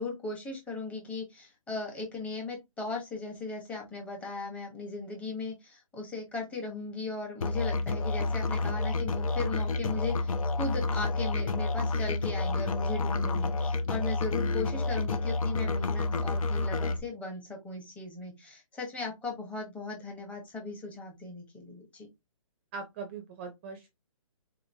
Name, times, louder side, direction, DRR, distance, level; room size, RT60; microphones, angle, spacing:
voice 1, 0.0-22.1, left 3 dB, 5° left, 1 dB, 1.0 m, -38 dB
Musical instrument, 7.4-17.0, left 3 dB, 75° left, 0.7 m, -29 dB
voice 2, 22.7-23.9, right 5 dB, 20° right, 7 dB, 0.5 m, -40 dB
4.0 x 2.9 x 2.7 m, 0.20 s
hypercardioid pair, 155°, 18 cm